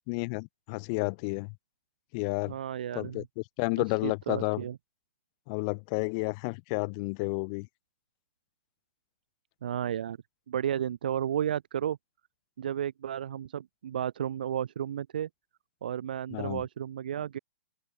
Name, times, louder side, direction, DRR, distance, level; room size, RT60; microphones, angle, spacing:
voice 1, 0.1-1.5 2.1-2.6 2.9-3.2 3.6-4.6 5.5-7.7 16.3-16.6, left 33 dB, 40° left, 1.9 m, -31 dB
voice 2, 2.5-3.3 4.0-4.8 9.6-10.2 10.5-12.0 12.6-15.3 15.8-17.4, right 9 dB, 60° right, 2.8 m, -33 dB
figure-of-eight pair, 105°, 6 cm